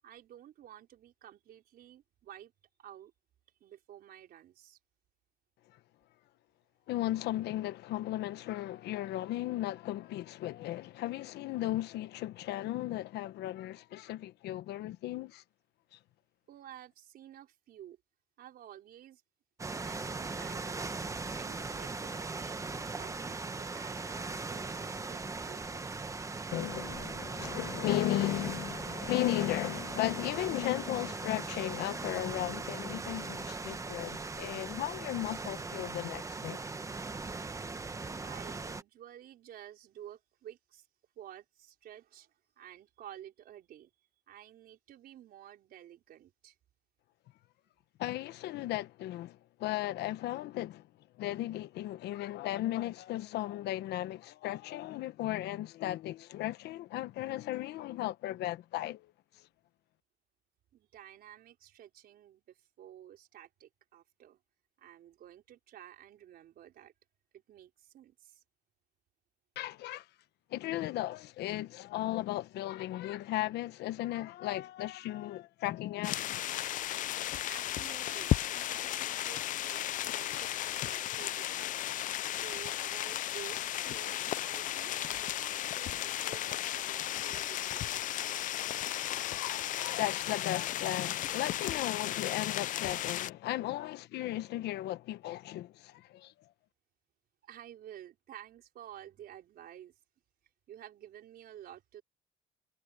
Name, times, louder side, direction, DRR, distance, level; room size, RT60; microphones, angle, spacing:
voice 1, 0.0-2.5 2.8-3.1 3.6-4.8 16.5-18.0 18.4-19.2 19.7-20.9 21.3-26.2 38.2-40.9 41.2-43.9 44.3-46.6 60.7-64.4 64.8-66.9 67.3-68.4 77.5-81.8 82.2-88.2 97.4-100.0 100.7-102.0, right 11 dB, 65° right, 4.4 m, -52 dB
voice 2, 6.9-15.4 15.9-16.0 26.5-36.6 48.0-50.9 51.2-59.5 69.5-70.1 70.5-76.4 89.1-96.3, left 15 dB, 80° left, 1.2 m, -36 dB
sound 1, 19.6-38.8, right 3 dB, 20° right, 1.2 m, -39 dB
sound 2, 76.0-93.3, left 13 dB, 50° left, 0.4 m, -35 dB
cardioid pair, 110°, 17 cm